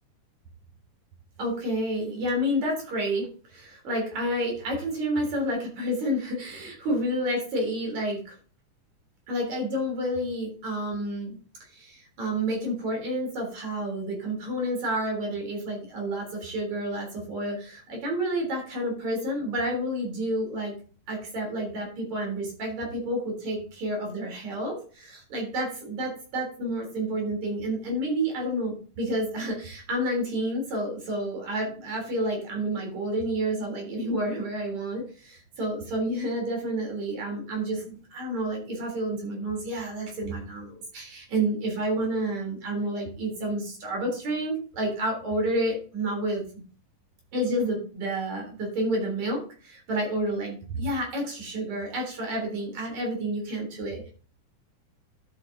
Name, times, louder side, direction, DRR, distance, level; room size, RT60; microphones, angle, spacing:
voice 1, 1.4-8.3 9.3-11.4 11.7-20.7 21.1-35.0 35.3-46.4 47.3-54.1, right 1 dB, 60° right, 1 dB, 4.7 m, -30 dB
12.5 x 8.0 x 2.7 m, 0.40 s
omnidirectional pair, 3.6 m